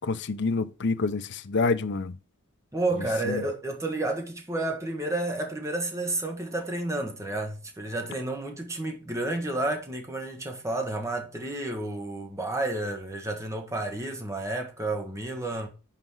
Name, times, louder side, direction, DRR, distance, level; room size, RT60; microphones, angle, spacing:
voice 1, 0.0-2.1 3.3-3.4, left 4 dB, 55° left, 0.6 m, -27 dB
voice 2, 2.7-15.7, right 2 dB, 15° right, 1.2 m, -31 dB
5.8 x 5.0 x 6.1 m
head